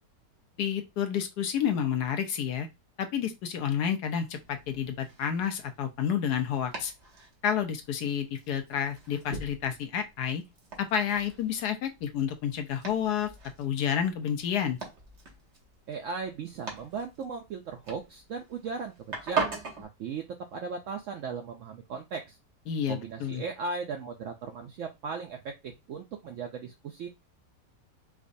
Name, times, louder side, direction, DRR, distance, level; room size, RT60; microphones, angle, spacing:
voice 1, 0.6-2.7 3.0-6.9 7.4-10.4 10.8-13.3 13.6-14.8 22.7-23.4, left 8 dB, 75° left, 1.2 m, -30 dB
Domestic sounds home sounds, 4.3-19.8, right 4 dB, 45° right, 1.2 m, -41 dB
voice 2, 15.9-19.5 19.8-22.4 22.9-27.1, right 5 dB, 75° right, 0.7 m, -37 dB
4.8 x 2.2 x 2.5 m
omnidirectional pair, 1.8 m